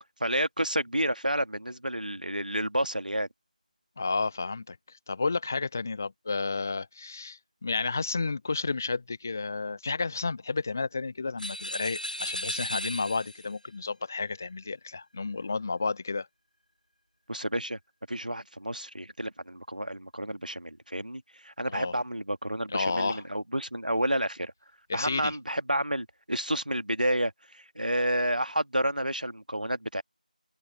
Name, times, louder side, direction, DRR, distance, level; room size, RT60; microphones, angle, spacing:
voice 1, 0.2-3.3 17.3-17.8 18.1-24.5 24.9-30.0, right 1 dB, 80° right, 1.9 m, -30 dB
voice 2, 4.0-16.3 21.7-21.9 22.7-23.2 24.9-25.4, left 4 dB, 20° left, 0.8 m, -31 dB
sound 1, 11.4-13.5, equal, 85° left, 7.7 m, -35 dB
figure-of-eight pair, 170°, 5 cm